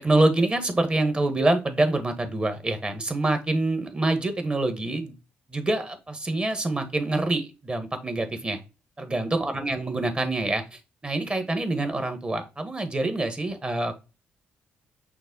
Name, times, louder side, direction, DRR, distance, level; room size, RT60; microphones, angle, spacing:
voice 1, 0.0-5.1 5.5-8.6 9.0-13.9, right 2 dB, 25° right, 7 dB, 1.2 m, -26 dB
6.0 x 2.1 x 3.8 m, 0.29 s
supercardioid pair, 55°, 5 cm